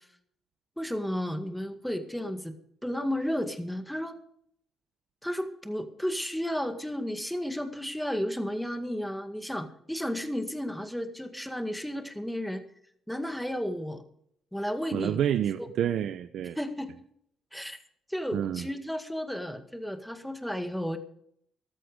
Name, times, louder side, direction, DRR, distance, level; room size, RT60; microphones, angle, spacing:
voice 1, 0.8-2.5 2.8-4.2 5.2-12.6 13.1-14.0 14.5-15.2 15.6-15.7 16.6-16.9 17.5-17.8 18.1-21.0, equal, ahead, 7 dB, 1.9 m, -33 dB
voice 2, 14.9-16.6 18.3-18.7, right 10 dB, 75° right, 12 dB, 0.6 m, -28 dB
13.5 x 13.5 x 5.1 m, 0.67 s
cardioid pair, 90°, 0 cm